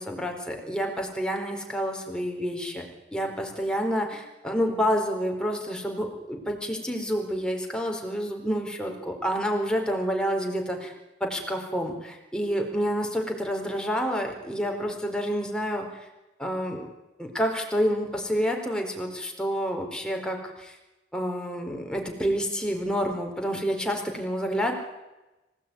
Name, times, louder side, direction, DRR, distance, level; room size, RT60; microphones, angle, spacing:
voice 1, 0.0-2.8 3.1-10.9 11.2-15.8 16.4-16.9 17.2-20.7 21.1-24.7, equal, 5° left, 2 dB, 4.4 m, -28 dB
26.5 x 17.0 x 9.4 m, 1.0 s
head